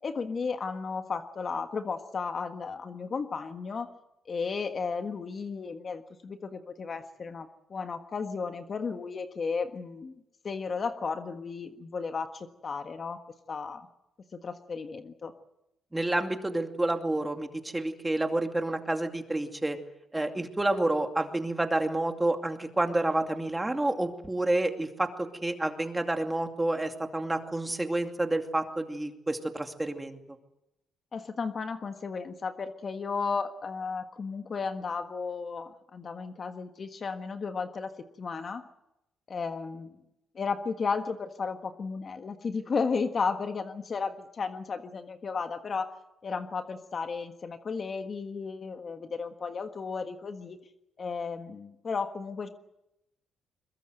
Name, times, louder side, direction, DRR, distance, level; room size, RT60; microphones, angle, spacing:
voice 1, 0.0-3.9 4.3-13.2 13.5-13.9 14.3-15.3 31.1-37.9 38.2-38.6 39.3-39.9 40.3-45.9 46.2-50.6 51.0-52.5, left 5 dB, 45° left, 7 dB, 1.5 m, -34 dB
voice 2, 15.9-19.8 20.1-30.2, right 2 dB, 15° right, 5 dB, 2.4 m, -29 dB
22.0 x 22.0 x 7.9 m, 0.88 s
cardioid pair, 90°, 0 cm